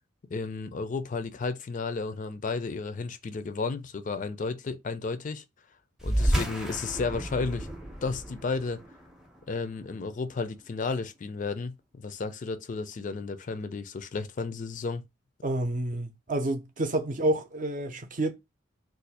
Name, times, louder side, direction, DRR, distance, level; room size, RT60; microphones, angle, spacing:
voice 1, 0.3-5.4 6.0-7.7 8.0-8.8 9.5-15.0, left 4 dB, 40° left, 0.4 m, -33 dB
sound 1, 6.0-10.9, equal, 5° right, 0.6 m, -32 dB
voice 2, 15.4-18.3, right 1 dB, 45° right, 0.6 m, -29 dB
2.5 x 2.4 x 4.1 m
head